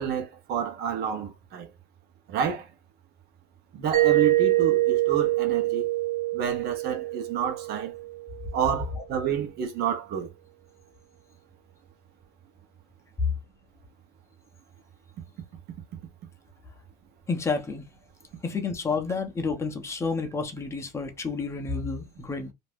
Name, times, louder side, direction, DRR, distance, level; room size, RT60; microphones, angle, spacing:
voice 1, 0.0-1.7 2.3-2.6 3.7-5.9 6.3-7.9 8.5-10.3, right 7 dB, 50° right, 0.9 m, -29 dB
Mallet percussion, 3.9-8.5, right 17 dB, 70° right, 1.3 m, -25 dB
voice 2, 17.3-17.8 18.4-22.5, left 4 dB, 15° left, 0.7 m, -30 dB
2.5 x 2.1 x 3.4 m
supercardioid pair, 110°, 21 cm